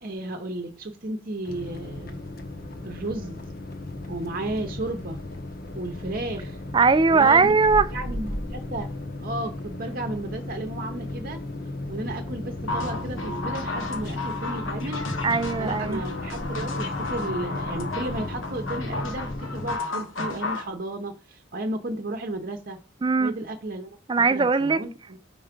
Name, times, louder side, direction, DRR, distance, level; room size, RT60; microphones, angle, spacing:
voice 1, 0.0-2.2 2.8-3.4 4.1-5.2 5.7-6.6 7.1-7.5 7.9-8.9 9.2-11.4 11.9-15.0 15.6-22.8 23.2-24.0 24.3-25.2, right 2 dB, 45° right, 0.8 m, -33 dB
sound 1, 1.4-19.8, left 2 dB, 50° left, 0.9 m, -35 dB
voice 2, 6.7-7.9 15.2-16.0 23.0-23.3 24.1-24.8, right 4 dB, 25° right, 0.4 m, -20 dB
sound 2, 12.7-20.7, left 2 dB, 75° left, 1.3 m, -33 dB
5.3 x 4.7 x 5.1 m
head